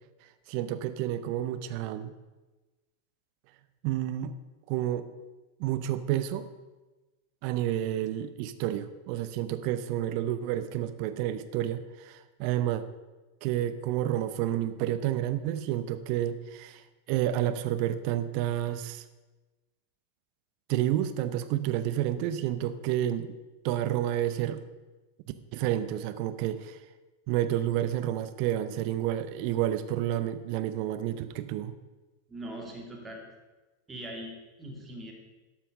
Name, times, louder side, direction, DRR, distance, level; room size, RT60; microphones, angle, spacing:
voice 1, 0.5-2.1 3.8-4.3 4.7-5.1 5.6-6.5 7.4-12.8 13.4-16.8 17.1-19.0 20.7-23.3 23.6-24.6 25.5-26.8 27.3-31.7, right 12 dB, 45° right, 11 dB, 0.7 m, -30 dB
voice 2, 32.3-33.2 33.9-35.1, right 1 dB, 15° right, 2 dB, 2.5 m, -41 dB
12.0 x 5.9 x 6.5 m, 1.2 s
figure-of-eight pair, 90°, 0 cm